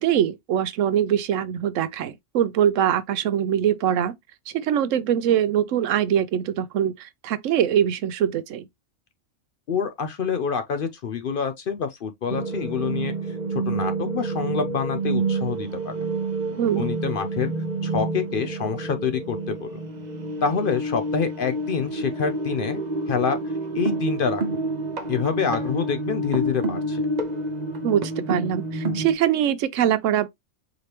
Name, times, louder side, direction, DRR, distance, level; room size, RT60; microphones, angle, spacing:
voice 1, 0.0-4.1 4.5-8.6 16.6-16.9 27.8-30.3, right 10 dB, 85° right, 1.0 m, -23 dB
voice 2, 9.7-13.1 13.5-15.9 16.8-17.5 17.8-19.7 20.4-23.4 23.7-24.4 25.1-27.0, left 6 dB, 55° left, 0.6 m, -27 dB
sound 1, 12.3-29.1, right 2 dB, 40° right, 0.8 m, -28 dB
4.9 x 3.1 x 2.9 m
omnidirectional pair, 1.3 m